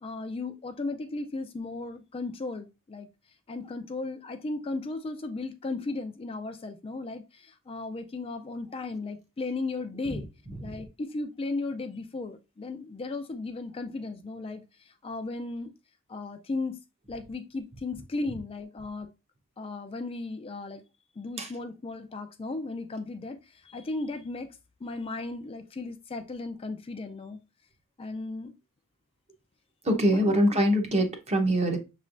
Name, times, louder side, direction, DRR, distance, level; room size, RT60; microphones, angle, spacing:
voice 1, 0.0-3.1 3.5-10.3 10.6-15.7 16.1-16.8 17.1-19.1 19.6-20.8 21.2-27.4 28.0-28.5 30.1-30.6, left 3 dB, 25° left, 0.4 m, -36 dB
voice 2, 29.9-31.8, equal, 30° right, 0.8 m, -23 dB
6.2 x 3.2 x 2.5 m
head